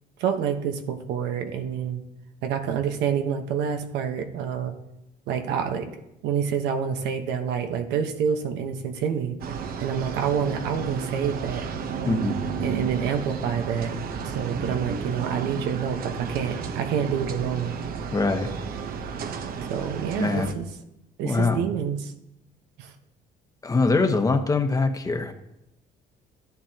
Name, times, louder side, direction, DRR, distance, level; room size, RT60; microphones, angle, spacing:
voice 1, 0.2-2.0 2.4-4.7 5.3-5.9 6.2-9.4 9.8-11.7 12.6-14.0 14.2-17.7 19.7-20.7 21.2-22.1 22.8-22.9, right 7 dB, 90° right, 6 dB, 1.2 m, -27 dB
sound 1, 9.4-20.5, right 6 dB, 60° right, 1.0 m, -32 dB
voice 2, 12.1-12.4 18.1-18.5 20.2-20.5 21.2-21.6 23.6-25.3, left 3 dB, 20° left, 6 dB, 1.1 m, -23 dB
13.5 x 10.5 x 2.9 m, 0.87 s
cardioid pair, 110°, 17 cm